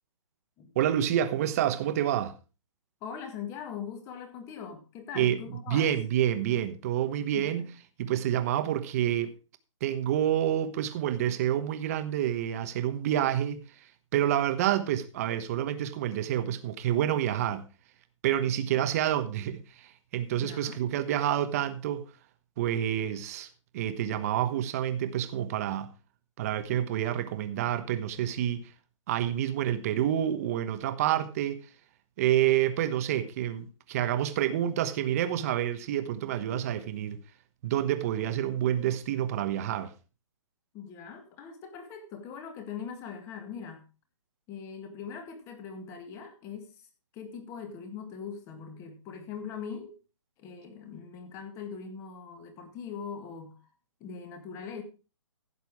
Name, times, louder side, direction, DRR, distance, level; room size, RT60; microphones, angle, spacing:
voice 1, 0.7-2.4 5.1-5.4 5.7-7.7 8.0-9.3 9.8-13.6 14.1-17.7 18.2-22.0 22.6-23.5 23.7-25.9 26.4-28.6 29.1-31.6 32.2-37.2 37.6-39.9, right 11 dB, 30° right, 1.1 m, -28 dB
voice 2, 3.0-5.9 7.3-7.7 20.3-20.8 40.7-43.8 44.5-49.9 50.4-53.6 54.0-54.8, left 6 dB, 20° left, 1.9 m, -41 dB
15.5 x 6.9 x 4.8 m
hypercardioid pair, 165°, 16 cm